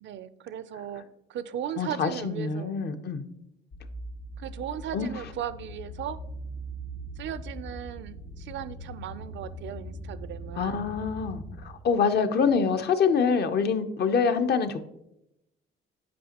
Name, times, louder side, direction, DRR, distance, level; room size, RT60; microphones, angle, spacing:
voice 1, 0.0-2.8 4.4-6.2 7.2-10.8, right 10 dB, 70° right, 15 dB, 0.4 m, -37 dB
voice 2, 1.8-3.2 4.9-5.1 10.6-14.9, left 6 dB, 55° left, 8 dB, 0.6 m, -25 dB
sound 1, 3.7-11.6, equal, 80° left, 1.4 m, -40 dB
8.5 x 5.0 x 2.8 m, 0.84 s
cardioid pair, 90°, 20 cm